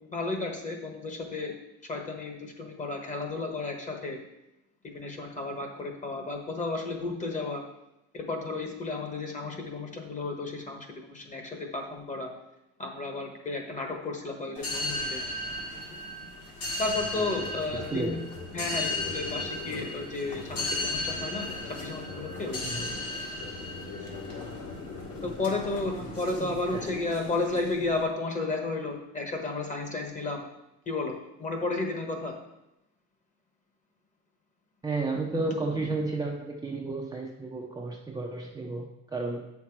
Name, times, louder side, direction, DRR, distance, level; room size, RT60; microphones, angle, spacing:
voice 1, 0.0-1.6 1.9-4.2 4.9-7.6 8.1-12.3 12.8-15.2 16.8-18.2 18.5-21.5 21.8-22.8 25.2-30.5 30.9-32.3 35.3-35.6 35.8-36.0, left 3 dB, 25° left, 3 dB, 1.3 m, -33 dB
sound 1, 14.5-28.0, left 2 dB, 50° left, 1.8 m, -35 dB
voice 2, 17.7-18.2 22.6-22.9 26.1-26.2 26.7-27.0 34.8-39.5, right 3 dB, 10° right, -1 dB, 0.6 m, -32 dB
8.2 x 5.9 x 4.6 m, 0.89 s
cardioid pair, 150°, 30 cm